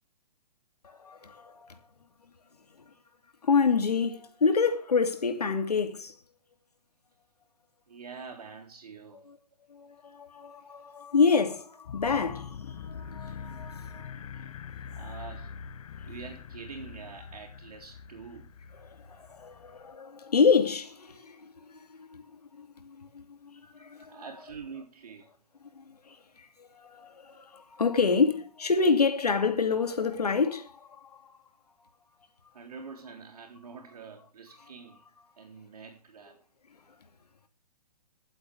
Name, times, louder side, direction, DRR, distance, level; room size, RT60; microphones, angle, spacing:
voice 1, 0.8-1.8 3.4-6.1 9.3-9.4 9.7-14.1 19.1-24.1 25.7-31.2, left 5 dB, 80° left, 2.6 m, -28 dB
voice 2, 7.9-9.3 13.9-14.1 14.9-15.6 16.0-18.5 23.7-25.3 27.1-27.4 32.5-35.0 35.4-36.4, right 5 dB, 65° right, 3.7 m, -46 dB
sound 1, 11.9-20.0, left 6 dB, 60° left, 0.8 m, -43 dB
23.0 x 8.0 x 3.4 m
figure-of-eight pair, 130°, 20 cm